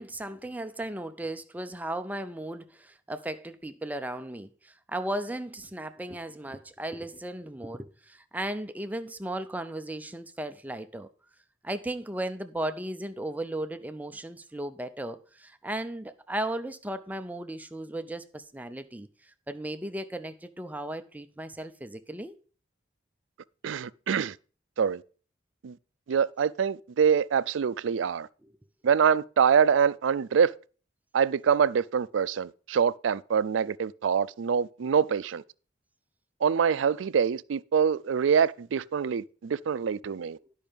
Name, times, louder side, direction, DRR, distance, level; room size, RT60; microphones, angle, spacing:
voice 1, 0.0-11.1 11.6-22.4 27.9-28.0 28.4-28.5 40.5-40.6, right 1 dB, 10° right, 0.5 m, -36 dB
voice 2, 23.6-24.3 24.8-25.0 25.6-25.7 26.1-28.3 28.8-30.5 31.1-35.4 36.4-40.4, right 7 dB, 85° right, 0.4 m, -25 dB
10.5 x 5.5 x 5.1 m
head